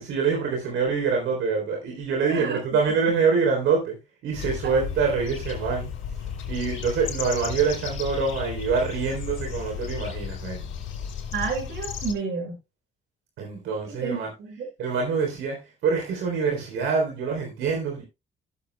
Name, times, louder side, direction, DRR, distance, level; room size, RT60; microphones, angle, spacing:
voice 1, 0.0-4.0 4.2-5.9 6.5-10.7 13.4-14.3 14.8-18.0, right 5 dB, 85° right, 3.6 m, -25 dB
voice 2, 2.3-2.6 11.3-12.6 13.8-14.7, right 5 dB, 65° right, 5.9 m, -30 dB
sound 1, 4.3-12.1, left 8 dB, 80° left, 4.4 m, -34 dB
16.5 x 7.7 x 2.3 m
cardioid pair, 90°, 20 cm